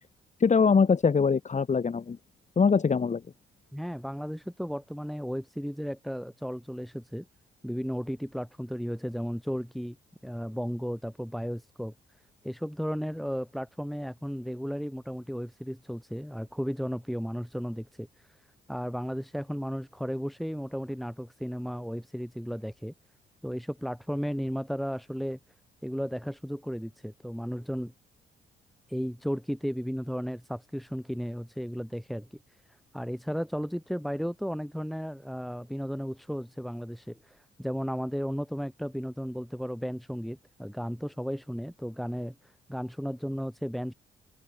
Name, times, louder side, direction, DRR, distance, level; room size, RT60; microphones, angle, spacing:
voice 1, 0.4-2.2 2.6-3.2, left 5 dB, 35° left, 3.9 m, -23 dB
voice 2, 3.7-7.3 7.6-10.0 10.2-11.9 12.4-18.4 18.7-22.9 23.4-25.4 25.8-27.9 28.9-32.4 32.9-43.9, equal, ahead, 7.4 m, -34 dB
cardioid pair, 90°, 20 cm